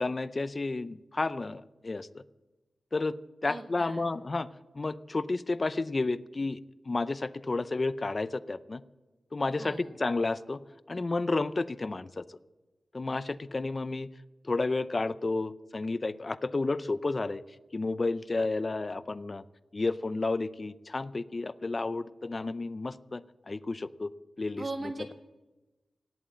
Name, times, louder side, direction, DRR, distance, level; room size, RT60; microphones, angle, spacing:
voice 1, 0.0-2.2 2.9-4.5 4.7-6.6 6.9-8.8 9.3-10.6 10.9-12.4 12.9-14.1 14.4-17.4 17.7-19.4 19.7-24.1 24.4-24.6, left 3 dB, 40° left, 15 dB, 0.5 m, -31 dB
voice 2, 3.5-4.2 9.6-10.0 24.6-25.1, right 2 dB, 45° right, 5 dB, 1.4 m, -39 dB
18.0 x 8.5 x 9.2 m, 1.1 s
wide cardioid pair, 95°, 0 cm